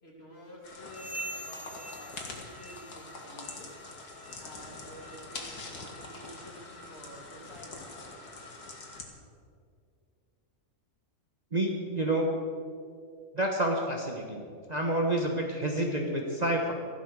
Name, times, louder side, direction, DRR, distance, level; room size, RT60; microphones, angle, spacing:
voice 1, 0.0-3.9 4.4-7.9, equal, 40° left, -2 dB, 3.0 m, -50 dB
sound 1, 0.6-9.0, left 3 dB, 85° left, 2.4 m, -44 dB
sound 2, 0.9-3.1 3.4-3.8 4.2-4.5 5.1-5.2 5.9-6.0 6.8-6.9, right 1 dB, 10° left, 0.8 m, -44 dB
voice 2, 11.5-12.5 13.3-14.4 14.7-16.7, right 1 dB, 30° right, 1 dB, 1.3 m, -29 dB
14.5 x 12.0 x 6.4 m, 2.3 s
omnidirectional pair, 1.6 m